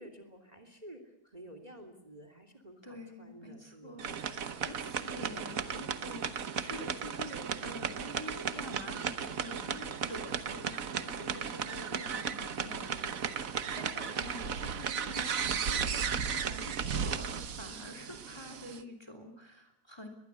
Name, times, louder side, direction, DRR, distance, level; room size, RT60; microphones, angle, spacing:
voice 1, 0.0-4.7 5.1-5.6 11.1-11.5 14.0-14.1, right 1 dB, 20° right, 8 dB, 3.0 m, -52 dB
voice 2, 2.8-20.1, left 1 dB, 15° left, 6 dB, 3.0 m, -47 dB
sound 1, 4.0-18.8, right 7 dB, 55° right, 1.4 m, -35 dB
22.5 x 21.5 x 8.3 m, 0.81 s
omnidirectional pair, 2.0 m